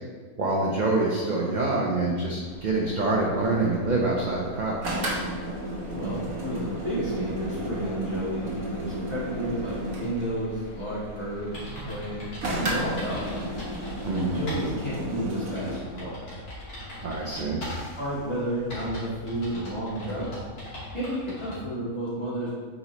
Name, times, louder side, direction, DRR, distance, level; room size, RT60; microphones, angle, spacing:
voice 1, 0.4-4.9 14.0-14.4 17.0-17.6, right 2 dB, 40° right, -3 dB, 0.7 m, -26 dB
sound 1, 2.5-20.6, left 1 dB, 50° left, 1.7 m, -46 dB
sound 2, 4.8-10.3 12.4-15.8, right 1 dB, 70° right, 1.6 m, -33 dB
voice 2, 5.9-13.4 14.3-16.1 18.0-20.3 20.9-22.5, right 1 dB, 20° left, -12 dB, 1.8 m, -31 dB
sound 3, 11.5-14.7 15.0-15.1 15.5-18.0 18.7-21.6, equal, 85° left, 2.7 m, -40 dB
8.4 x 5.2 x 3.0 m, 1.5 s
omnidirectional pair, 1.5 m